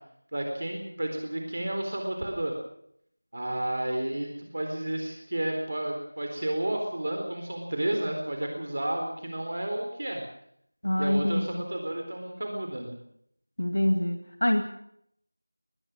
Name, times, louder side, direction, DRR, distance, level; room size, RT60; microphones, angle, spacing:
voice 1, 0.3-2.5 3.3-10.2 11.0-13.0, right 1 dB, 50° right, 3 dB, 4.1 m, -31 dB
voice 2, 10.8-11.6 13.6-14.6, left 1 dB, 75° left, 6 dB, 2.1 m, -25 dB
20.5 x 20.0 x 6.4 m, 0.72 s
figure-of-eight pair, 175°, 0 cm